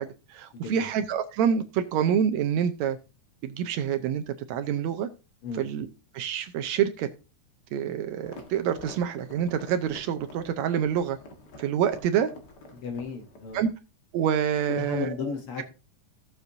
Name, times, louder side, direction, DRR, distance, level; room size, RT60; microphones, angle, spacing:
voice 1, 0.0-3.0 3.4-5.1 5.5-5.9 6.1-7.1 7.7-11.2 11.6-12.3 13.5-13.7 14.1-15.2, right 8 dB, 75° right, 1.9 m, -27 dB
voice 2, 0.5-0.9 5.4-5.7 12.7-13.6 14.7-15.6, left 5 dB, 60° left, 1.6 m, -34 dB
sound 1, 8.2-13.6, left 1 dB, 45° left, 1.6 m, -48 dB
16.0 x 7.0 x 2.7 m
omnidirectional pair, 3.4 m